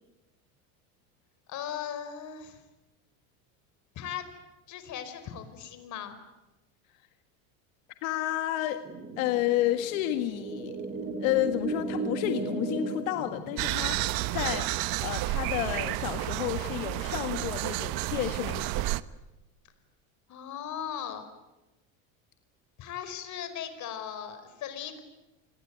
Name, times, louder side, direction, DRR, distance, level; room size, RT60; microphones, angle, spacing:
voice 1, 1.5-2.6 3.9-4.3 4.7-6.2 20.3-21.3 22.8-25.0, left 9 dB, 45° left, 10 dB, 4.9 m, -38 dB
voice 2, 8.0-8.8 9.2-10.8 11.2-18.8, left 14 dB, 85° left, 7 dB, 1.8 m, -31 dB
sound 1, 8.8-15.7, right 3 dB, 20° right, 3.1 m, -36 dB
sound 2, 13.6-19.0, right 17 dB, 60° right, 1.1 m, -31 dB
28.0 x 21.0 x 9.4 m, 1.0 s
supercardioid pair, 130°, 40 cm